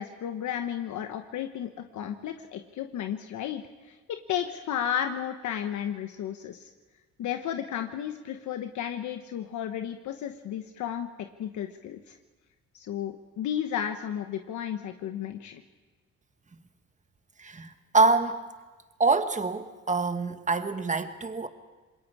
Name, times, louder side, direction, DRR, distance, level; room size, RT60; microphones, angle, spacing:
voice 1, 0.0-6.7 7.2-12.2 12.7-15.6, left 9 dB, 75° left, 6 dB, 1.2 m, -33 dB
voice 2, 17.4-18.4 19.0-21.5, right 3 dB, 25° right, 8 dB, 1.5 m, -25 dB
27.0 x 21.5 x 4.9 m, 1.3 s
cardioid pair, 90°, 30 cm